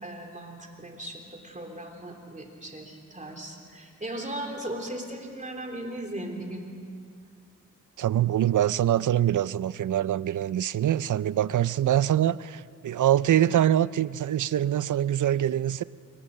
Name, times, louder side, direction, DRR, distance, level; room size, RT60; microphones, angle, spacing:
voice 1, 0.0-6.6, right 1 dB, 25° right, 2 dB, 3.4 m, -37 dB
voice 2, 8.0-15.8, right 11 dB, 70° right, 18 dB, 0.5 m, -24 dB
28.0 x 23.0 x 6.5 m, 2.2 s
wide cardioid pair, 110°, 31 cm